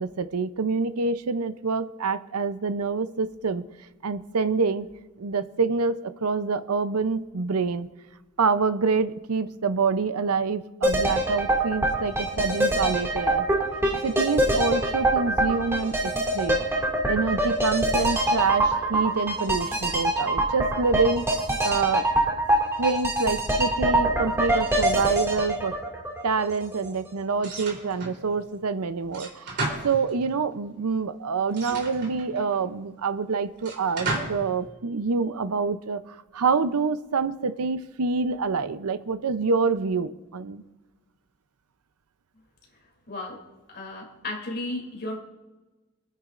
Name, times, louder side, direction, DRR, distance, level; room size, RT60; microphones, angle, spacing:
voice 1, 0.0-3.6 4.0-4.9 5.2-7.9 8.4-13.5 14.0-21.2 21.6-22.0 22.8-25.8 26.2-36.0 36.3-40.6, right 4 dB, 85° right, 12 dB, 0.6 m, -26 dB
sound 1, 10.8-26.8 27.1-27.2, right 1 dB, 10° right, 2.2 m, -24 dB
sound 2, 27.4-28.2 29.1-30.4 31.5-32.6 33.6-34.5, right 2 dB, 50° right, 3.5 m, -33 dB
voice 2, 43.1-43.4 43.7-45.2, left 2 dB, 50° left, 0 dB, 3.0 m, -34 dB
25.5 x 10.0 x 2.5 m, 1.1 s
head